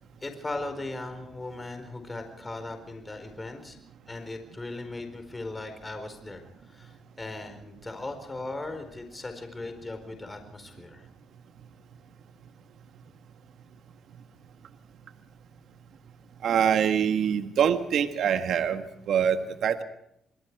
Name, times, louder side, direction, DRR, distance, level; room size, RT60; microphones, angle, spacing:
voice 1, 0.2-3.8 4.1-6.4 6.7-11.0, left 2 dB, 20° left, 7 dB, 4.5 m, -38 dB
voice 2, 16.4-19.8, right 8 dB, 70° right, 8 dB, 1.6 m, -25 dB
28.0 x 21.5 x 4.8 m, 0.78 s
cardioid pair, 90°, 0 cm